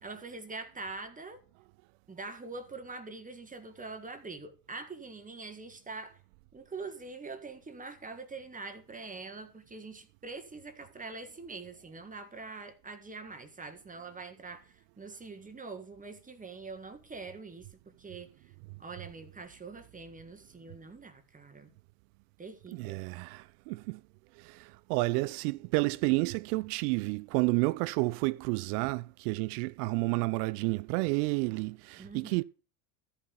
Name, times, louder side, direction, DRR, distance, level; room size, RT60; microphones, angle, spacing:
voice 1, 0.0-1.4 2.1-6.2 6.5-18.5 18.8-21.7 22.4-23.0 32.0-32.4, right 3 dB, 15° right, 1.7 m, -44 dB
voice 2, 22.7-24.0 24.4-32.4, right 24 dB, 70° right, 0.5 m, -30 dB
13.5 x 5.7 x 6.9 m
supercardioid pair, 100°, 48 cm